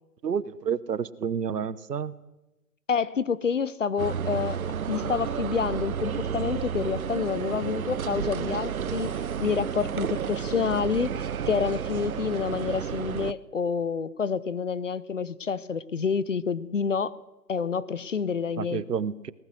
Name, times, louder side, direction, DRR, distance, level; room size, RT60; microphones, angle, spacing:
voice 1, 0.2-2.1 18.6-19.3, right 7 dB, 75° right, 17 dB, 1.1 m, -30 dB
voice 2, 2.9-4.6 4.9-9.1 9.4-11.1 11.5-17.2 17.5-18.8, left 6 dB, 50° left, 18 dB, 0.7 m, -28 dB
sound 1, 4.0-13.3, right 8 dB, 60° right, 0.6 m, -31 dB
23.0 x 19.0 x 6.3 m, 1.0 s
hypercardioid pair, 170°, 48 cm